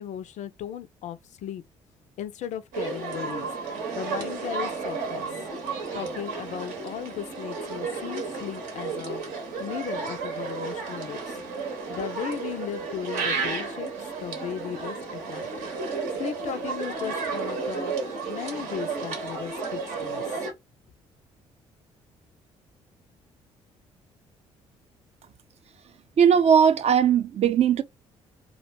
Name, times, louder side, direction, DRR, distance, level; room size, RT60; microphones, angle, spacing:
voice 1, 0.0-1.6 2.2-3.4 3.9-5.3 5.9-9.2 9.6-11.4 11.9-13.9 14.2-15.5 16.1-17.9 18.3-20.5, left 9 dB, 50° left, 0.4 m, -36 dB
sound 1, 2.7-20.5, right 4 dB, 65° right, 0.9 m, -32 dB
voice 2, 26.2-27.8, right 7 dB, 45° right, 0.5 m, -19 dB
2.4 x 2.1 x 2.8 m
hypercardioid pair, 45°, 15 cm